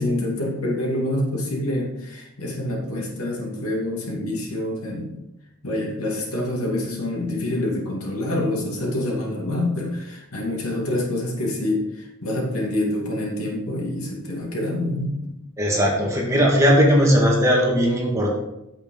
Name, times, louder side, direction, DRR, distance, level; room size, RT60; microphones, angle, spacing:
voice 1, 0.0-5.1 5.6-15.4, left 1 dB, 85° left, -1 dB, 2.5 m, -26 dB
voice 2, 15.6-18.3, equal, 15° right, -3 dB, 1.9 m, -18 dB
8.7 x 7.9 x 3.9 m, 0.90 s
head